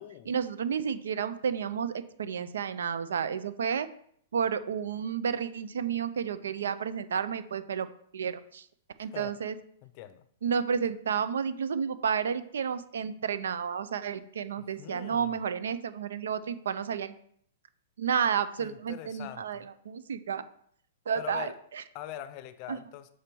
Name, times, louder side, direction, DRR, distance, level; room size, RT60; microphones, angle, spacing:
voice 1, 0.3-3.9 4.3-7.9 8.1-8.7 9.0-9.5 10.4-17.1 18.0-20.4 21.1-21.8 22.7-22.8, right 7 dB, 90° right, 13 dB, 0.6 m, -31 dB
voice 2, 9.8-10.3 14.8-15.4 18.6-19.7 21.1-21.6 21.9-23.1, left 11 dB, 40° left, 14 dB, 0.5 m, -42 dB
6.4 x 4.5 x 5.3 m, 0.65 s
hypercardioid pair, 150°, 0 cm